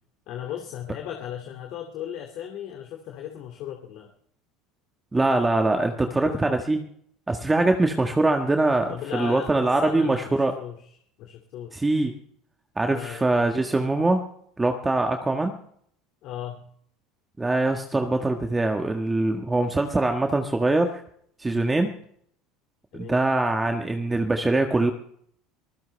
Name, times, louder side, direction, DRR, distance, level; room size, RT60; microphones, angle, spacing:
voice 1, 0.3-4.1 6.0-6.6 8.9-10.9 11.2-11.8 12.9-13.3 16.2-16.7 21.5-21.8 22.9-23.2, left 10 dB, 60° left, 3 dB, 2.4 m, -37 dB
voice 2, 5.1-6.8 7.3-10.5 11.7-12.1 12.8-14.2 14.6-15.5 17.4-21.0 21.4-21.9 22.9-24.9, right 2 dB, 15° right, 4 dB, 1.5 m, -23 dB
24.0 x 15.0 x 3.4 m, 0.64 s
supercardioid pair, 105°, 0 cm